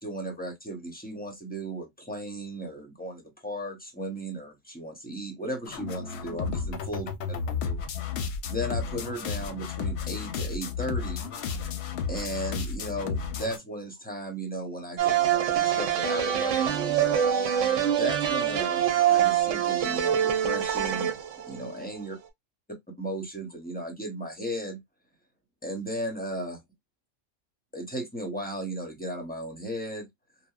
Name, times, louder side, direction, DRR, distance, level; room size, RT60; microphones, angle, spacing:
voice 1, 0.0-7.4 7.6-7.8 8.5-11.3 12.1-17.2 17.9-21.2 21.5-22.2 23.0-24.8 25.6-26.6 27.7-30.1, right 1 dB, 10° left, 0.5 m, -35 dB
sound 1, 5.7-13.6, left 6 dB, 65° left, 0.7 m, -32 dB
sound 2, 15.0-22.0, right 10 dB, 85° right, 1.0 m, -25 dB
2.9 x 2.1 x 2.3 m
omnidirectional pair, 1.3 m